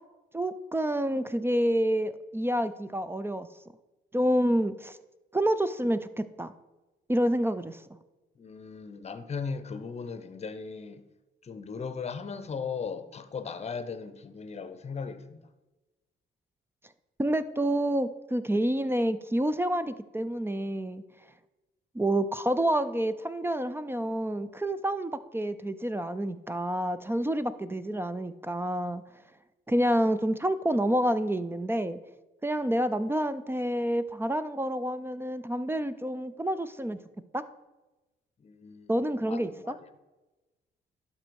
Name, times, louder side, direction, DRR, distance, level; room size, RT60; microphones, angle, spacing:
voice 1, 0.3-3.5 4.1-5.0 5.3-6.5 7.1-7.8 17.2-21.0 21.9-29.0 29.7-32.0 32.4-37.0 37.3-37.4 38.9-39.7, right 1 dB, 10° right, 0.4 m, -28 dB
voice 2, 8.4-11.0 11.4-15.4 38.4-38.9 39.3-39.8, left 5 dB, 35° left, 0.7 m, -37 dB
11.5 x 4.3 x 4.6 m
cardioid pair, 90°, 20 cm